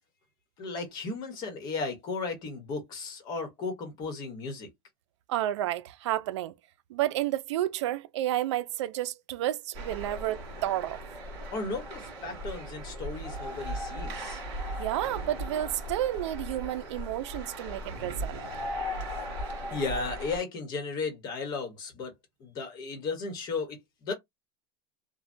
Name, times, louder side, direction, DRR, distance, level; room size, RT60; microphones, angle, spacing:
voice 1, 0.6-4.7 11.5-14.4 19.7-22.1 22.4-24.1, left 4 dB, 30° left, 1.0 m, -35 dB
voice 2, 5.3-6.5 6.9-11.0 14.8-18.5, right 13 dB, 85° right, 0.4 m, -31 dB
sound 1, 9.7-20.4, equal, 55° right, 1.9 m, -37 dB
3.2 x 2.2 x 2.6 m
supercardioid pair, 170°, 15 cm